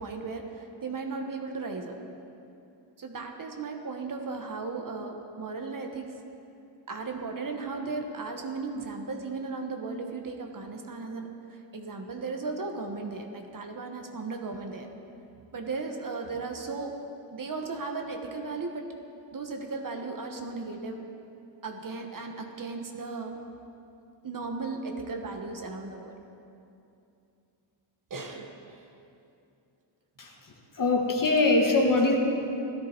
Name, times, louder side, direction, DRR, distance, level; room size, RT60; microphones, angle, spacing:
voice 1, 0.0-2.0 3.0-6.1 6.9-14.9 15.5-16.9 17.3-18.9 19.3-21.0 21.6-23.4 24.2-26.1 28.1-28.9, right 4 dB, 45° right, 3 dB, 1.2 m, -36 dB
voice 2, 30.7-32.2, left 2 dB, 45° left, 0 dB, 1.8 m, -22 dB
16.5 x 13.5 x 4.5 m, 2.7 s
wide cardioid pair, 160°, 47 cm